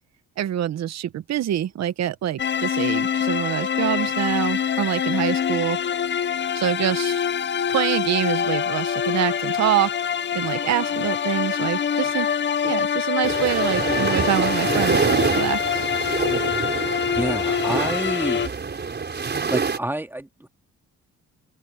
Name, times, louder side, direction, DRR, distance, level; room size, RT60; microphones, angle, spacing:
voice 1, 0.4-5.8 6.5-7.2 7.7-9.9 10.3-12.3 12.6-15.8, right 11 dB, 60° right, 0.9 m, -25 dB
sound 1, 2.4-18.5, left 8 dB, 40° left, 0.7 m, -25 dB
sound 2, 13.2-19.8, right 5 dB, 35° right, 5.5 m, -26 dB
voice 2, 17.1-18.7 19.3-20.5, right 1 dB, 5° right, 2.2 m, -29 dB
open air
cardioid pair, 90°, 30 cm